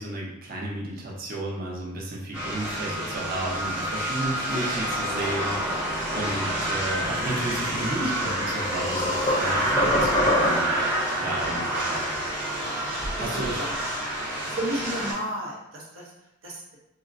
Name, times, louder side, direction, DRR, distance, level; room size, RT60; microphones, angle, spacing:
voice 1, 0.0-10.6 11.2-12.0 13.2-13.7, right 1 dB, 45° right, -3 dB, 0.7 m, -33 dB
sound 1, 2.3-15.1, right 1 dB, 10° right, 1.0 m, -28 dB
sound 2, 7.7-7.8 8.3-10.8, left 1 dB, 30° left, 0.3 m, -26 dB
voice 2, 10.5-10.8 11.7-11.9 13.2-13.8 14.4-16.1 16.4-16.6, right 1 dB, 85° right, -3 dB, 0.8 m, -33 dB
3.6 x 2.0 x 2.5 m, 0.92 s
head